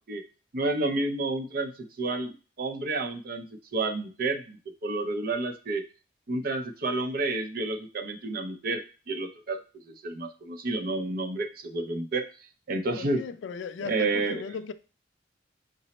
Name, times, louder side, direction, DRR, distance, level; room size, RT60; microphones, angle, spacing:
voice 1, 0.5-3.5 3.7-4.6 4.8-5.8 6.3-9.6 9.9-12.2 12.7-13.2 13.8-14.4, right 2 dB, 55° right, 0.6 m, -30 dB
voice 2, 13.0-14.7, left 6 dB, 90° left, 0.3 m, -37 dB
5.2 x 2.0 x 4.1 m
head